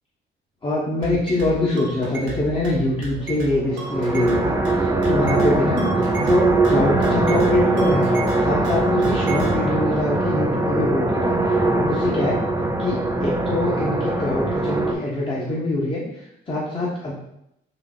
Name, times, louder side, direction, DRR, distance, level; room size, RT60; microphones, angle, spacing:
voice 1, 0.6-8.1 8.4-12.4 12.8-17.1, left 2 dB, 25° left, -6 dB, 0.9 m, -24 dB
sound 1, 1.0-9.6, right 1 dB, 85° right, 1.1 m, -34 dB
sound 2, 3.6-14.9, right 2 dB, 15° right, 0.5 m, -21 dB
3.9 x 2.7 x 3.7 m, 0.80 s
cardioid pair, 90°, 20 cm